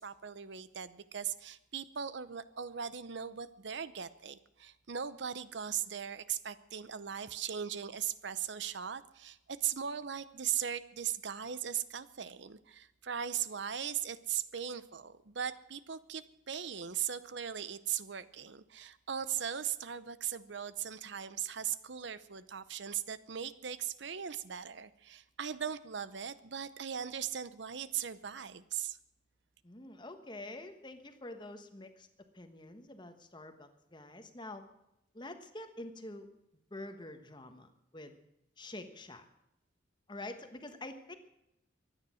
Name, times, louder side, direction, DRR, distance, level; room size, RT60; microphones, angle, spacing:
voice 1, 0.0-29.0, right 9 dB, 60° right, 15 dB, 0.7 m, -39 dB
voice 2, 29.6-32.1 32.3-34.7 35.1-36.3 36.7-38.2 38.6-39.2 40.1-41.1, left 2 dB, 25° left, 8 dB, 1.3 m, -47 dB
23.5 x 9.7 x 6.3 m, 0.86 s
head